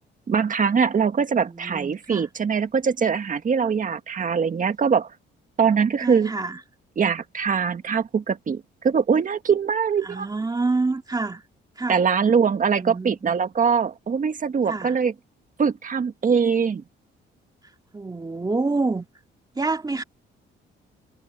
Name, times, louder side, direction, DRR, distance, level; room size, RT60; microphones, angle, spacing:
voice 1, 0.3-5.1 5.6-6.3 7.0-10.3 11.9-15.1 15.6-16.8, right 6 dB, 40° right, 1.8 m, -22 dB
voice 2, 1.4-2.3 6.0-6.6 10.0-11.4 11.8-12.0 12.8-13.4 14.7-15.0 17.9-19.1 19.5-20.0, right 3 dB, 20° right, 2.5 m, -27 dB
cardioid pair, 90°, 20 cm